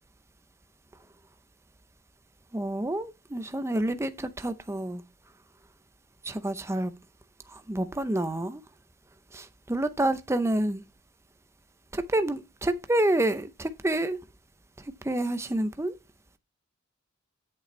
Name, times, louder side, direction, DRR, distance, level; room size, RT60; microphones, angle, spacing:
voice 1, 2.5-5.0 6.2-6.9 7.5-8.6 9.3-10.8 11.9-14.2 15.0-15.9, right 1 dB, 15° right, 0.6 m, -28 dB
8.5 x 7.1 x 3.2 m
head